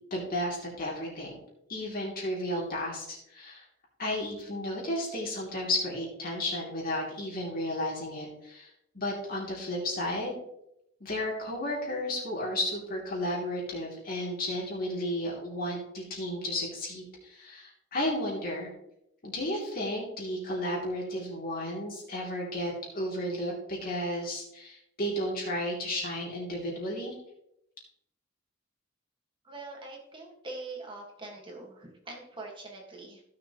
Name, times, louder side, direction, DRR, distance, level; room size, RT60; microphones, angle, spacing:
voice 1, 0.1-1.4 1.7-3.6 4.0-10.3 11.0-18.7 19.2-27.2, left 1 dB, 45° left, -3 dB, 3.1 m, -33 dB
voice 2, 29.4-33.2, right 2 dB, 25° right, 0 dB, 1.8 m, -43 dB
15.5 x 6.7 x 3.1 m, 0.79 s
head